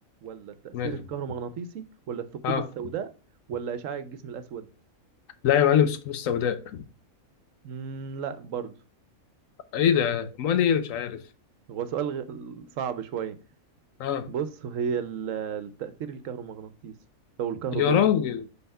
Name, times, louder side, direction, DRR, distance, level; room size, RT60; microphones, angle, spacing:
voice 1, 0.2-3.1 3.5-4.7 7.6-8.7 11.7-13.4 14.3-16.9 17.4-18.1, right 7 dB, 70° right, 1.0 m, -33 dB
voice 2, 5.4-6.8 9.7-11.2 14.0-14.3 17.7-18.5, left 9 dB, 75° left, 1.1 m, -23 dB
5.6 x 4.1 x 5.4 m
omnidirectional pair, 1.4 m